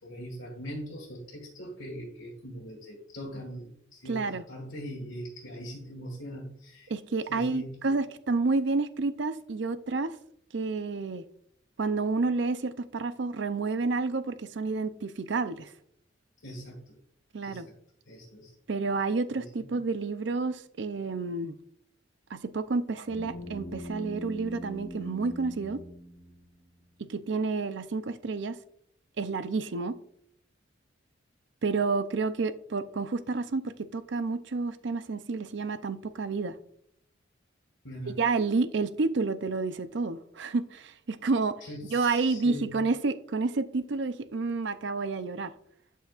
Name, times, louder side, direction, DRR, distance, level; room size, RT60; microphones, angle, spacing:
voice 1, 0.0-6.9 7.3-7.8 16.4-16.9 17.4-17.6 18.1-18.5 19.3-19.7 37.8-38.2 41.6-42.8, equal, 75° left, 1.8 m, -41 dB
voice 2, 4.1-4.4 6.9-10.1 10.5-11.2 11.8-15.7 17.3-17.7 18.7-21.5 22.3-25.8 27.1-28.6 29.2-30.0 31.6-36.5 38.1-41.5 41.9-45.5, right 3 dB, 60° right, 0.5 m, -30 dB
sound 1, 23.1-26.8, equal, 60° left, 1.8 m, -41 dB
11.5 x 5.6 x 2.4 m
head